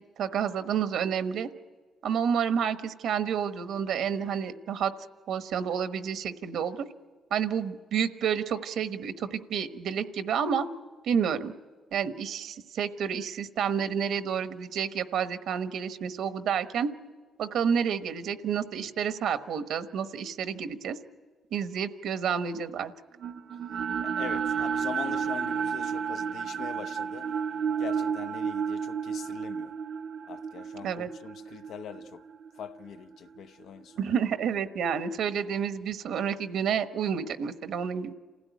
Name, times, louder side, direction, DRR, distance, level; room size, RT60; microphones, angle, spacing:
voice 1, 0.2-1.5 2.0-4.9 5.3-6.9 7.3-10.7 11.0-11.5 11.9-16.9 17.4-21.0 21.5-22.9 30.8-31.1 34.0-38.1, right 7 dB, 75° right, 1.2 m, -29 dB
sound 1, 23.2-33.4, right 7 dB, 55° right, 0.7 m, -32 dB
voice 2, 24.0-27.3 27.8-29.7 30.3-32.2 32.5-34.1, left 8 dB, 75° left, 0.7 m, -42 dB
27.5 x 16.0 x 9.4 m
cardioid pair, 90°, 0 cm